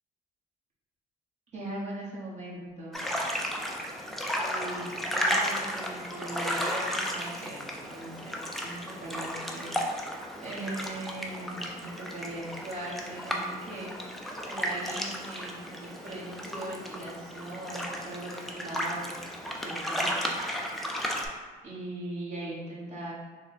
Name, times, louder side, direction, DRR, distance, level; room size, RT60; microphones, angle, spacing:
voice 1, 1.5-3.1 4.3-8.3 8.6-14.2 14.4-19.2 19.4-20.2 21.6-23.1, right 1 dB, 45° right, -6 dB, 1.2 m, -40 dB
sound 1, 2.9-21.3, equal, ahead, 0.3 m, -34 dB
3.2 x 2.0 x 4.1 m, 1.4 s
cardioid pair, 110°, 17 cm